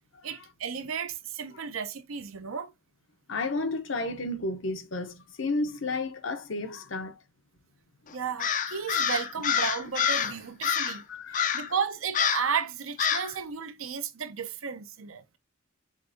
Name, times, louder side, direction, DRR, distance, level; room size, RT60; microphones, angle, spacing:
voice 1, 0.2-2.7 8.1-11.0 11.5-15.2, right 6 dB, 80° right, 0.7 m, -33 dB
voice 2, 3.3-7.2 10.7-11.7, left 2 dB, 65° left, 0.8 m, -32 dB
Crow, 8.4-10.3 10.6-11.0 11.3-11.7 12.1-12.5 13.0-13.3, left 7 dB, 40° left, 0.4 m, -27 dB
5.2 x 3.4 x 2.6 m
head